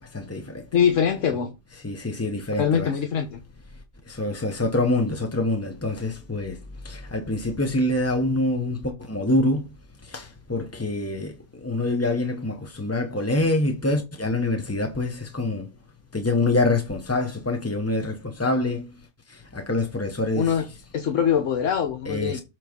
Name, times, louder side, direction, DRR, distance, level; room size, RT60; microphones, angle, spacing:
voice 1, 0.0-0.7 1.8-2.9 3.7-15.7 16.1-20.5 22.1-22.4, left 2 dB, 20° left, 0.4 m, -26 dB
voice 2, 0.7-1.6 2.6-3.4 20.4-20.7 20.9-22.4, left 8 dB, 55° left, 1.1 m, -23 dB
7.6 x 3.8 x 5.1 m
omnidirectional pair, 1.8 m